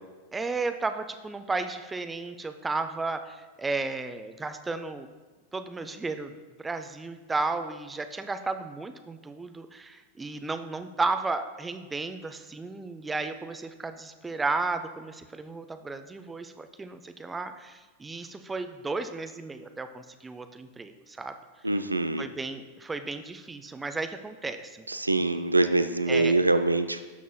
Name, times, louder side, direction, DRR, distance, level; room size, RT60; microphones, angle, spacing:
voice 1, 0.3-5.1 5.5-6.3 6.6-21.4 22.2-24.8 26.1-26.4, right 3 dB, 10° right, 9 dB, 0.5 m, -33 dB
voice 2, 21.6-22.3 24.9-27.0, right 2 dB, 85° right, 10 dB, 0.3 m, -24 dB
11.5 x 6.0 x 2.3 m, 1.3 s
figure-of-eight pair, 90°, 0 cm